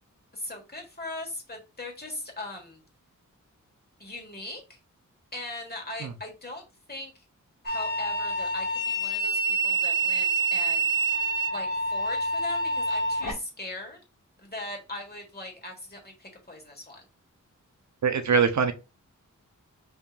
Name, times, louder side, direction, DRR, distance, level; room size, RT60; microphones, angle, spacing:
voice 1, 0.3-2.8 4.0-4.8 5.3-7.1 7.6-10.9 11.5-14.0 14.4-17.0, left 2 dB, 30° left, 1.4 m, -39 dB
sound 1, 7.7-13.3, right 2 dB, 80° left, 1.3 m, -27 dB
voice 2, 18.0-18.7, right 6 dB, 60° right, 0.5 m, -22 dB
5.3 x 2.8 x 2.3 m
wide cardioid pair, 105°, 32 cm